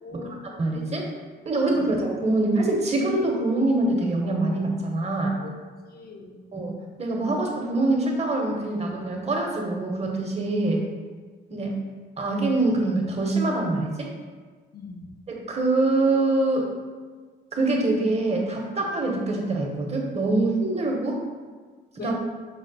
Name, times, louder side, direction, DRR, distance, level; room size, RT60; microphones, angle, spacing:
voice 1, 0.0-0.6 1.7-1.9 5.4-5.5 5.9-6.4 14.7-15.1 22.0-22.1, left 3 dB, 50° left, 2 dB, 0.6 m, -41 dB
voice 2, 0.6-1.0 1.4-5.3 6.5-10.8 11.5-11.7 12.2-14.1 15.3-16.6 17.5-21.2 22.0-22.1, right 2 dB, 35° right, 0 dB, 0.8 m, -24 dB
5.6 x 2.0 x 3.9 m, 1.5 s
cardioid pair, 90°, 20 cm